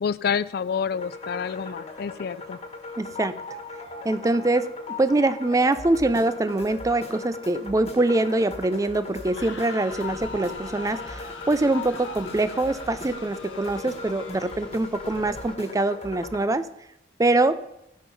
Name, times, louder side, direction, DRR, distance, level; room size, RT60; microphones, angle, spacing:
voice 1, 0.0-2.6, left 6 dB, 60° left, 17 dB, 0.4 m, -28 dB
sound 1, 0.9-16.4, left 3 dB, 35° left, 1.5 m, -38 dB
voice 2, 3.0-3.4 4.0-4.7 5.0-16.7 17.2-17.6, right 2 dB, 20° right, 12 dB, 0.4 m, -24 dB
sound 2, 9.1-14.9, left 5 dB, 80° left, 0.8 m, -43 dB
Thunder / Rain, 9.9-15.6, left 1 dB, 5° left, 1.1 m, -48 dB
15.0 x 5.5 x 5.5 m, 0.84 s
head